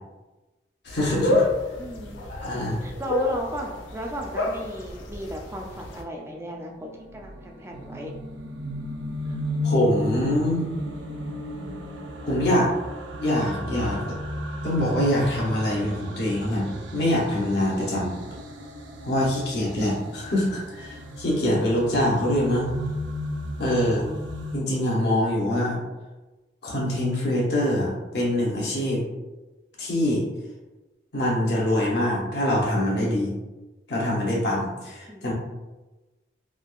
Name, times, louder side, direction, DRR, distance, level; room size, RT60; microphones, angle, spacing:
voice 1, 0.8-1.5 2.3-2.9 9.6-10.6 12.2-12.7 13.2-14.2 14.6-18.2 19.0-22.7 23.6-24.1 24.5-25.8 26.6-29.0 29.8-30.2 31.1-33.3 33.9-35.3, left 1 dB, 65° left, -4 dB, 0.8 m, -24 dB
sound 1, 0.9-6.0, left 2 dB, 90° left, 0.4 m, -29 dB
voice 2, 1.8-2.2 2.8-8.1 35.1-35.3, equal, 15° right, 0 dB, 0.3 m, -35 dB
sound 2, 6.6-24.6, left 1 dB, 80° right, 0.4 m, -34 dB
3.5 x 2.3 x 2.3 m, 1.1 s
head